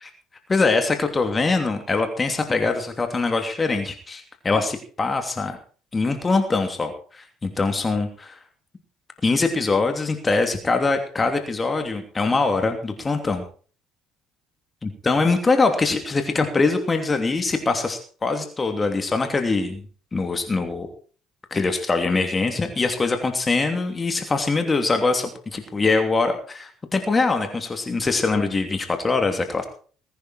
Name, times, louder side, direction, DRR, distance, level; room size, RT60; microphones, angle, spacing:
voice 1, 0.5-5.6 5.9-8.3 9.2-13.4 14.8-19.8 20.1-20.9 21.5-29.7, left 3 dB, 25° left, 6 dB, 3.0 m, -23 dB
21.0 x 10.5 x 4.5 m, 0.42 s
hypercardioid pair, 55°, 0 cm